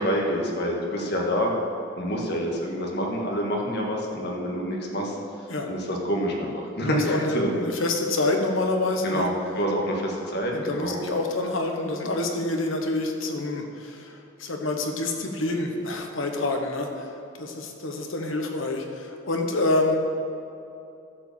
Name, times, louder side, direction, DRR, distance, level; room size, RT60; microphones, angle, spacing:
voice 1, 0.0-1.5 2.0-5.2 5.6-6.5 6.8-7.5 9.0-11.1, equal, 55° left, -1 dB, 1.7 m, -27 dB
voice 2, 6.8-9.3 10.5-17.1 17.4-20.0, left 2 dB, 75° left, 3 dB, 1.2 m, -27 dB
12.0 x 5.0 x 7.2 m, 2.7 s
head